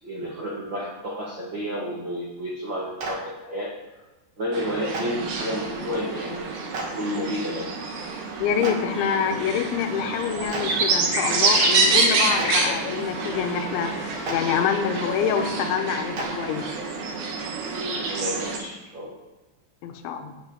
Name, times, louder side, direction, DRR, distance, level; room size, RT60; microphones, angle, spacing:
voice 1, 0.0-3.7 4.4-6.7 7.0-7.7 18.1-19.1, equal, 75° right, -4 dB, 1.0 m, -31 dB
Clapping, 3.0-3.1 4.9-5.0 6.7-6.8 8.6-8.7 10.5-10.6 12.3-12.5 14.2-14.3 16.1-16.2, right 3 dB, 45° right, 1.9 m, -30 dB
sound 1, 4.5-18.6, right 4 dB, 60° right, 3.1 m, -27 dB
voice 2, 8.4-16.7 19.8-20.3, left 7 dB, 80° left, 6 dB, 3.3 m, -26 dB
sound 2, 8.9-15.7, left 3 dB, 45° left, 1.6 m, -34 dB
8.8 x 6.6 x 8.6 m, 1.1 s
omnidirectional pair, 5.3 m